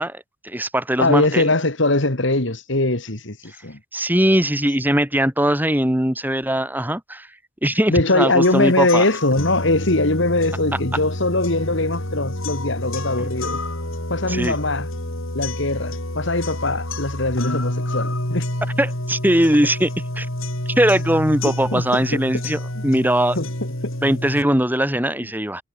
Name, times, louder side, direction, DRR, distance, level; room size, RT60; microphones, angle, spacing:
voice 1, 0.0-1.5 3.5-3.6 3.9-7.3 7.6-9.0 13.2-13.3 14.3-14.6 18.8-20.3 20.8-23.4 24.0-25.6, right 1 dB, 10° right, 5.9 m, -20 dB
voice 2, 1.0-3.8 7.9-13.6 14.1-14.9 15.3-18.5 21.4-21.8 22.1-22.2 23.4-23.5 23.8-23.9, left 2 dB, 60° left, 2.4 m, -21 dB
sound 1, 8.4-24.4, left 1 dB, 75° left, 7.0 m, -28 dB
head